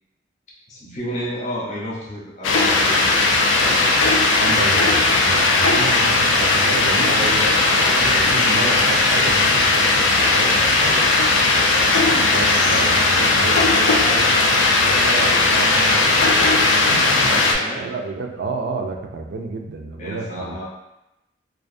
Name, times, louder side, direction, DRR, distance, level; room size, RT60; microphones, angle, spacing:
voice 1, 0.7-3.3 3.6-4.0 7.1-8.7 11.7-12.2 16.9-17.9 20.0-20.6, equal, 40° left, -5 dB, 0.6 m, -31 dB
sound 1, 2.4-17.5, left 3 dB, 90° left, 0.4 m, -17 dB
voice 2, 4.4-7.6 7.9-11.2 11.9-16.9 17.8-20.6, right 3 dB, 65° right, 3 dB, 0.3 m, -31 dB
2.4 x 2.2 x 2.6 m, 0.92 s
head